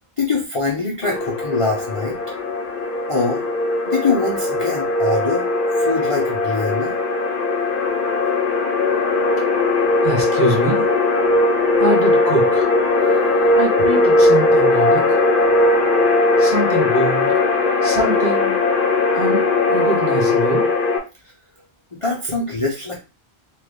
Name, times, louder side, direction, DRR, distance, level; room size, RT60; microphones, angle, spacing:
voice 1, 0.2-2.5 3.1-3.4 3.9-5.5 5.8-7.2 15.5-15.8 22.0-23.0, left 3 dB, 35° left, -3 dB, 0.6 m, -24 dB
sound 1, 1.0-21.0, left 2 dB, 60° left, 0.9 m, -18 dB
voice 2, 9.8-10.9 11.8-12.7 13.5-15.1 16.4-17.4 17.8-18.6 19.1-19.4 19.7-20.6, right 2 dB, 35° right, -3 dB, 1.3 m, -24 dB
3.0 x 2.4 x 3.5 m, 0.29 s
omnidirectional pair, 1.1 m